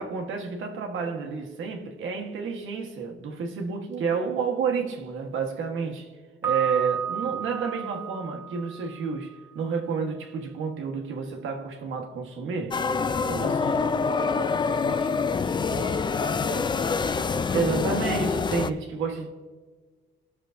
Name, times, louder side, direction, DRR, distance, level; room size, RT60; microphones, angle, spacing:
voice 1, 0.0-6.1 6.4-12.9 13.2-13.6 14.2-14.6 17.5-19.3, right 5 dB, 80° right, 1.3 m, -30 dB
Piano, 6.4-9.3, right 8 dB, 10° right, 1.4 m, -32 dB
sound 1, 12.7-18.7, left 5 dB, 25° left, 0.3 m, -26 dB
voice 2, 13.4-18.1, left 2 dB, 50° left, 1.3 m, -35 dB
18.0 x 6.4 x 2.6 m
cardioid pair, 90°, 20 cm